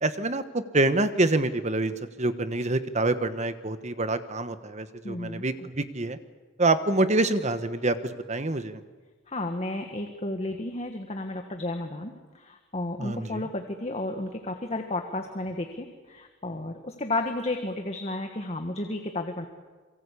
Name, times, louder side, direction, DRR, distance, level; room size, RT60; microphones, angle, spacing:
voice 1, 0.0-6.2 6.6-8.8 13.0-13.4, right 2 dB, 35° right, 11 dB, 1.3 m, -26 dB
voice 2, 5.0-5.4 9.3-19.5, left 2 dB, 35° left, 5 dB, 1.6 m, -32 dB
27.5 x 23.5 x 8.4 m, 1.3 s
head